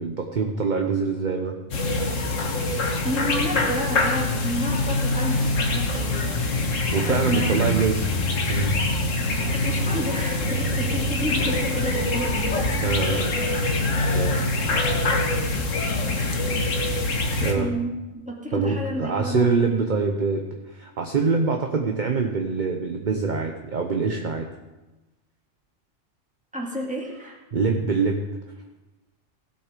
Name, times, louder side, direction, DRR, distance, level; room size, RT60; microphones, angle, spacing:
voice 1, 0.0-1.6 6.9-8.1 8.5-8.8 12.8-13.4 14.1-14.4 17.4-17.8 18.5-24.5 27.5-28.2, right 4 dB, 40° right, 3 dB, 0.9 m, -24 dB
sound 1, 1.7-17.5, left 2 dB, 90° left, 1.6 m, -24 dB
voice 2, 3.0-6.8 7.1-7.6 9.5-12.8 14.0-14.2 17.4-20.0 26.5-27.4, equal, 5° right, -2 dB, 2.1 m, -31 dB
16.5 x 7.4 x 5.1 m, 1.1 s
omnidirectional pair, 1.3 m